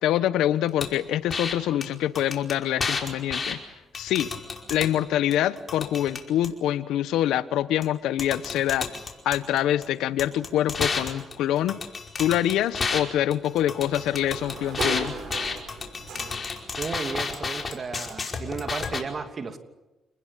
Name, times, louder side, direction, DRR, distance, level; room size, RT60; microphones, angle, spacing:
voice 1, 0.0-3.6 3.9-4.3 4.7-8.9 9.2-11.8 12.2-15.1, left 12 dB, 85° left, 14 dB, 1.2 m, -25 dB
sound 1, 0.8-0.9 1.3-1.5 1.8-1.9 2.1-3.5 3.9-4.9 5.3-6.5 7.8-7.9 8.2-9.8 10.2-13.0 13.3-19.0, left 4 dB, 35° left, 5.1 m, -31 dB
Sliding door, 12.8-16.7, right 5 dB, 65° right, 6.2 m, -38 dB
voice 2, 16.8-19.6, right 5 dB, 40° right, 7 dB, 2.9 m, -34 dB
29.0 x 20.5 x 8.7 m, 1.1 s
cardioid pair, 90°, 0 cm